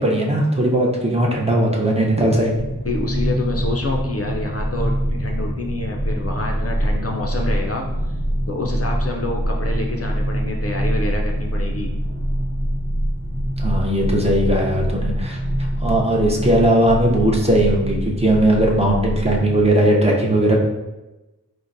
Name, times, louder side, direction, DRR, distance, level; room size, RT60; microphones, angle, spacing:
voice 1, 0.0-2.5 13.6-15.4 15.8-20.6, right 1 dB, 15° right, -2 dB, 0.6 m, -18 dB
sound 1, 2.5-19.7, equal, 40° right, 1.1 m, -24 dB
voice 2, 2.8-7.9 8.5-11.9, left 2 dB, 40° left, 0 dB, 0.4 m, -27 dB
4.3 x 2.1 x 2.5 m, 1.0 s
wide cardioid pair, 45°, 37 cm